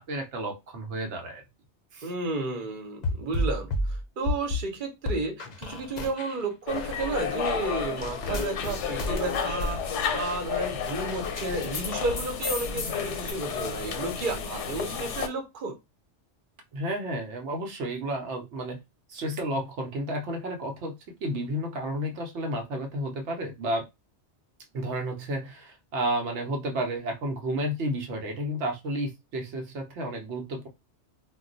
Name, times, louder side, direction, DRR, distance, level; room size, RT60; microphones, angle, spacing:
voice 1, 0.0-1.4 1.9-2.1 16.7-18.8 19.1-21.0 21.2-23.8 24.7-30.7, right 1 dB, 80° right, 1.0 m, -31 dB
voice 2, 2.0-15.8, right 3 dB, 50° right, 0.9 m, -32 dB
sound 1, 3.0-4.7 5.1-6.5 6.7-11.9 12.2-13.3, left 2 dB, 50° left, 0.6 m, -32 dB
sound 2, 6.7-15.3, left 6 dB, 90° left, 0.9 m, -32 dB
2.3 x 2.2 x 3.8 m
omnidirectional pair, 1.2 m